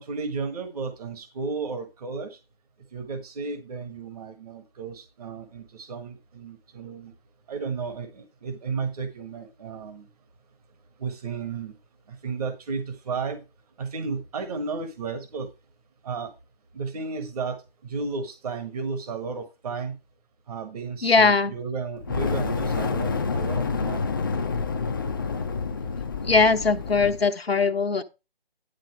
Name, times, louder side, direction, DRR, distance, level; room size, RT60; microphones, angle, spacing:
voice 1, 0.0-2.4 2.9-7.1 7.5-10.1 11.0-11.7 12.1-13.4 13.8-15.5 16.0-16.3 16.7-20.0 20.5-24.1, right 4 dB, 40° right, 1.5 m, -33 dB
voice 2, 21.0-21.5 26.2-28.0, left 4 dB, 85° left, 1.3 m, -20 dB
Fire, 22.0-27.3, left 4 dB, 20° left, 0.5 m, -28 dB
10.5 x 3.9 x 5.9 m
figure-of-eight pair, 150°, 29 cm